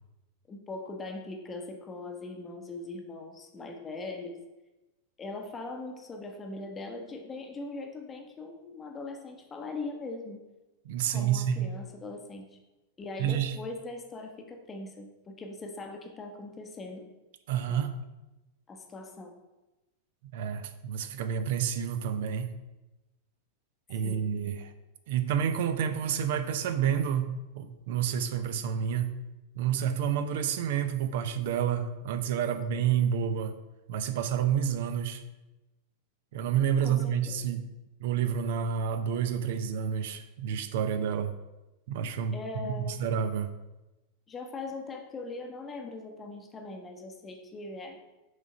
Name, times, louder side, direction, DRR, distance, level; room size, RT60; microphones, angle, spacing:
voice 1, 0.5-4.4 5.2-10.4 11.1-12.6 13.0-17.1 17.7-17.8 18.7-19.3 24.0-24.2 32.7-32.8 36.8-37.4 42.3-43.0 44.3-48.0, left 3 dB, 20° left, 4 dB, 0.8 m, -40 dB
voice 2, 10.9-11.7 13.2-13.6 17.5-17.9 20.3-22.5 23.9-24.7 25.1-29.1 29.5-33.6 33.9-35.2 36.3-37.6 38.0-41.3 41.9-42.4 42.6-43.5, right 8 dB, 55° right, 9 dB, 0.5 m, -29 dB
6.3 x 3.7 x 5.2 m, 1.0 s
figure-of-eight pair, 90°, 0 cm